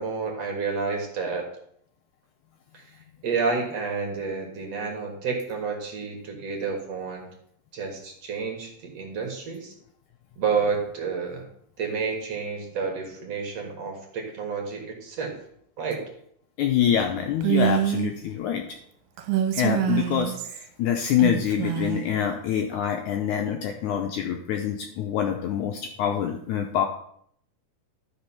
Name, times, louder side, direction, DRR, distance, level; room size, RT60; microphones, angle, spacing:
voice 1, 0.0-1.4 3.2-7.3 7.7-9.7 10.4-11.4 11.8-15.3 15.8-16.0, right 5 dB, 50° right, 1 dB, 2.5 m, -30 dB
voice 2, 16.6-18.6 19.5-26.9, left 9 dB, 80° left, 3 dB, 1.8 m, -25 dB
Female speech woman speaking, 17.4-18.1 19.2-20.7 21.2-22.1, right 10 dB, 75° right, 2.5 m, -25 dB
12.0 x 5.2 x 5.7 m, 0.68 s
omnidirectional pair, 4.1 m